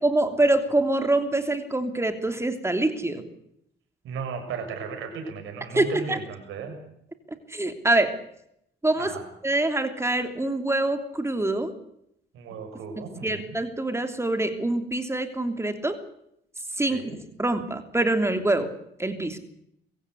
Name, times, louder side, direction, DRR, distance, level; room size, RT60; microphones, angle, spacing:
voice 1, 0.0-3.2 5.7-6.2 7.5-8.1 8.8-9.1 9.4-11.7 13.0-16.0 16.8-17.0 17.4-18.7 19.0-19.4, right 2 dB, 15° right, 7 dB, 3.1 m, -25 dB
voice 2, 4.0-6.7 9.0-9.2 12.3-13.5 16.8-17.2, right 5 dB, 90° right, 5 dB, 6.6 m, -35 dB
24.0 x 16.0 x 8.2 m, 0.75 s
cardioid pair, 90°, 20 cm